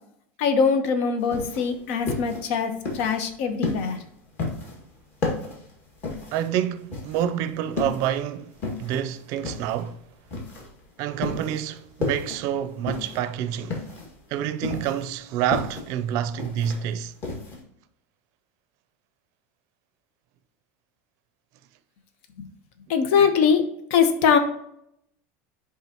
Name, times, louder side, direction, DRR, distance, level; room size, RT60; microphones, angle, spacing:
voice 1, 0.4-4.0 22.4-22.5 22.9-23.6 23.9-24.4, left 6 dB, 65° left, 1.0 m, -22 dB
sound 1, 1.2-17.6, left 3 dB, 35° left, 2.0 m, -33 dB
voice 2, 6.3-8.5 8.8-10.0 11.0-13.8 14.3-17.1, right 10 dB, 50° right, 0.5 m, -28 dB
10.5 x 3.7 x 2.9 m
supercardioid pair, 150°, 7 cm